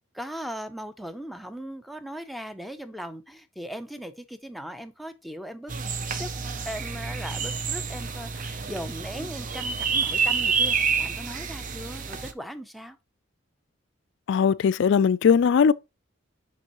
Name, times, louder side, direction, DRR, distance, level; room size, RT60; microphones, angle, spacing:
voice 1, 0.1-5.7 6.1-6.3 6.6-13.0, equal, ahead, 0.6 m, -38 dB
sound 1, 5.7-12.3, right 5 dB, 40° right, 0.6 m, -28 dB
voice 2, 14.3-15.7, left 6 dB, 60° left, 0.3 m, -19 dB
7.0 x 5.4 x 3.0 m
head